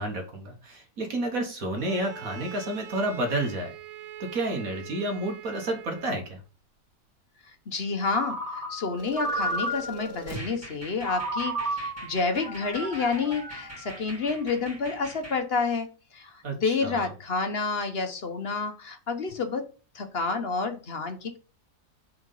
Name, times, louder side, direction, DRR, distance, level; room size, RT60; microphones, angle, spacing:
voice 1, 0.0-3.8 4.2-6.4 16.4-17.0, right 1 dB, 60° right, 3 dB, 1.6 m, -30 dB
Bowed string instrument, 1.7-6.3, right 9 dB, 80° right, 1.2 m, -43 dB
voice 2, 7.7-15.9 16.1-19.6 19.9-21.4, left 4 dB, 45° left, 8 dB, 1.0 m, -29 dB
Ringtone, 8.1-10.2 11.0-14.4, right 1 dB, 30° right, 2.5 m, -33 dB
sound 1, 9.0-15.4, right 2 dB, 10° right, 1.9 m, -42 dB
6.0 x 3.8 x 5.3 m, 0.35 s
omnidirectional pair, 1.7 m